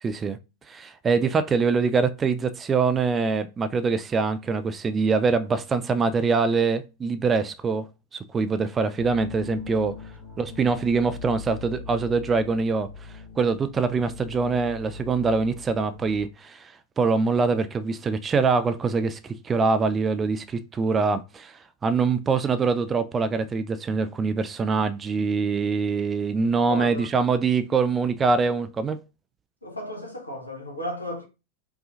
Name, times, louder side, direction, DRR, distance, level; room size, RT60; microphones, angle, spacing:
voice 1, 0.0-0.4 0.7-7.9 8.3-10.0 10.4-12.9 13.4-21.5 21.8-29.0, right 4 dB, 20° right, 0.4 m, -24 dB
sound 1, 9.0-16.2, left 4 dB, 20° left, 2.2 m, -41 dB
voice 2, 26.7-27.1 29.6-31.2, left 1 dB, 80° left, 1.2 m, -34 dB
5.4 x 2.4 x 2.5 m
figure-of-eight pair, 90°, 0 cm